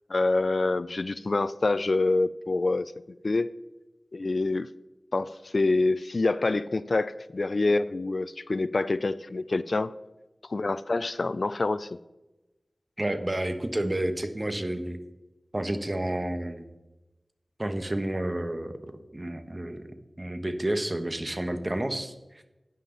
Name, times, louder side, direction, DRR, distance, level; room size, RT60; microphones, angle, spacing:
voice 1, 0.1-3.5 4.1-4.7 5.1-9.9 10.5-11.9, left 2 dB, 65° left, 16 dB, 0.3 m, -26 dB
voice 2, 13.0-15.0 15.5-16.6 17.6-22.1, right 1 dB, 30° right, 9 dB, 1.0 m, -30 dB
11.5 x 9.2 x 3.9 m, 1.0 s
wide cardioid pair, 65°, 0 cm